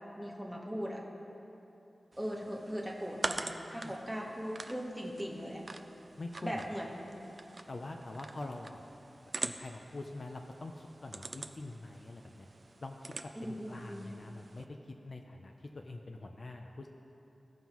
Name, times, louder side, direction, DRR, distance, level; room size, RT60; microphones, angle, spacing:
voice 1, 0.1-1.0 2.2-5.6 6.4-7.1 13.4-14.1, equal, 5° right, -2 dB, 1.1 m, -39 dB
sound 1, 2.1-14.7, right 2 dB, 40° right, 0.3 m, -45 dB
voice 2, 6.2-6.6 7.7-8.8 9.2-12.5 12.8-13.2 13.4-16.9, left 2 dB, 50° left, 3 dB, 0.5 m, -45 dB
16.0 x 5.5 x 3.0 m, 3.0 s
wide cardioid pair, 110°, 0 cm